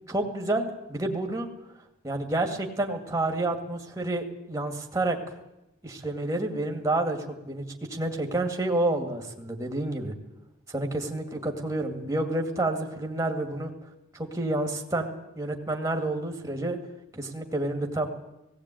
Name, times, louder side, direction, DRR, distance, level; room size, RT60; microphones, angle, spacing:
voice 1, 0.1-1.5 2.0-5.4 5.8-7.2 7.4-7.6 7.9-10.1 10.7-13.7 14.1-15.1 15.4-16.8 17.1-18.1, right 2 dB, 15° right, 4 dB, 2.1 m, -29 dB
17.5 x 17.0 x 9.1 m, 0.91 s
head